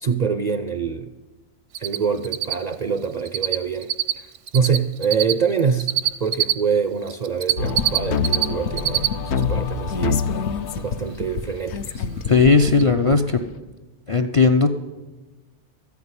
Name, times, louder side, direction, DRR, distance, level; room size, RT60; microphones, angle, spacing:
voice 1, 0.0-1.1 1.8-5.9 6.2-10.2 10.8-12.1, right 6 dB, 60° right, 9 dB, 0.4 m, -25 dB
Cricket, 1.7-2.0 2.2-6.5 7.1-8.5 8.7-9.1 9.4-9.5 12.0-12.1 12.5-12.6 12.8-12.9, right 13 dB, 80° right, 1.0 m, -22 dB
sound 1, 7.6-13.6, left 6 dB, 70° left, 0.9 m, -26 dB
voice 2, 12.3-13.4 14.1-14.7, left 4 dB, 45° left, 8 dB, 0.4 m, -16 dB
14.0 x 5.9 x 9.6 m, 1.2 s
omnidirectional pair, 1.2 m